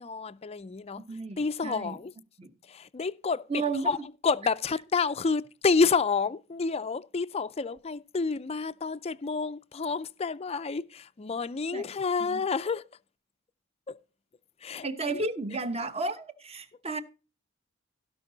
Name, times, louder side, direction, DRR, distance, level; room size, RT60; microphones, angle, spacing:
voice 1, 0.0-2.1 2.6-12.9 13.9-14.0 14.6-15.3, left 4 dB, 30° left, 0.4 m, -29 dB
voice 2, 1.1-1.4 1.6-2.0 2.4-2.5 3.5-3.9 11.7-11.9 12.2-12.4 14.8-17.0, right 3 dB, 30° right, 1.0 m, -32 dB
16.5 x 5.6 x 3.9 m
head